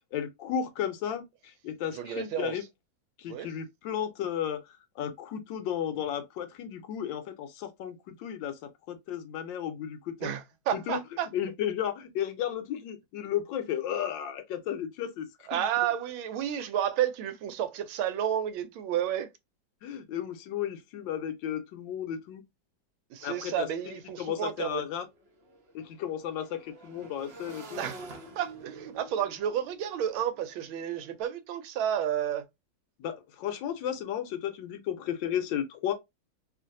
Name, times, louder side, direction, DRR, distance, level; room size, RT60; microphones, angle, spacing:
voice 1, 0.1-2.6 3.2-10.3 10.7-11.0 11.3-15.6 19.8-22.4 23.2-23.7 24.2-25.1 25.7-27.8 33.0-35.9, left 9 dB, 75° left, 1.2 m, -34 dB
voice 2, 1.9-2.6 3.3-3.5 10.2-11.3 15.5-19.3 23.1-24.8 27.8-28.0 28.4-32.4, right 10 dB, 90° right, 1.4 m, -31 dB
Motorcycle / Engine, 24.0-31.1, right 2 dB, 55° right, 0.6 m, -49 dB
3.1 x 2.5 x 2.5 m
omnidirectional pair, 2.2 m